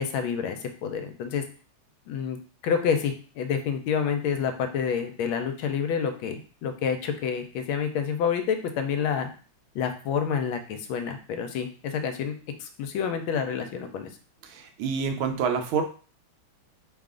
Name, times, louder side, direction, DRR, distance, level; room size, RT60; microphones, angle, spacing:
voice 1, 0.0-1.4 2.1-9.3 9.7-12.3 12.6-14.1, left 7 dB, 80° left, 7 dB, 1.4 m, -28 dB
voice 2, 14.4-15.8, right 6 dB, 90° right, 5 dB, 1.4 m, -27 dB
3.5 x 2.4 x 3.6 m, 0.38 s
omnidirectional pair, 2.2 m